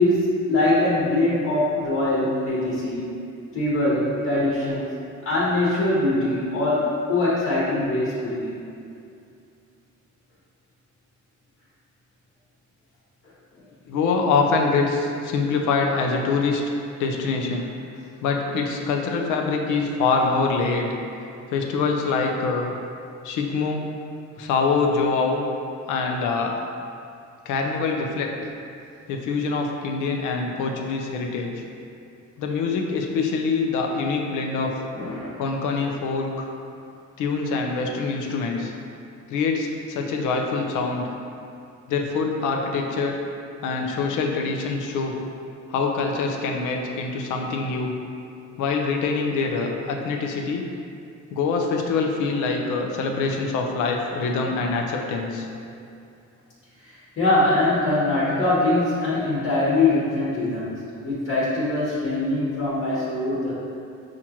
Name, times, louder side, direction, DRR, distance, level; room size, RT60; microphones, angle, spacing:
voice 1, 0.0-3.1 3.5-4.9 5.2-8.5 34.9-35.4 49.3-49.4 56.8-63.5, left 2 dB, 45° left, -8 dB, 1.2 m, -22 dB
voice 2, 13.9-16.6 17.0-17.6 18.2-20.9 21.5-22.7 23.2-23.8 24.4-25.4 25.9-26.6 27.5-28.3 29.1-31.5 32.4-34.7 35.4-36.5 37.2-38.7 39.3-41.1 41.9-43.2 43.6-45.2 45.7-47.9 48.6-50.6 51.3-55.5, left 4 dB, 90° left, 1 dB, 0.6 m, -24 dB
5.7 x 2.5 x 2.9 m, 2.5 s
cardioid pair, 90°, 30 cm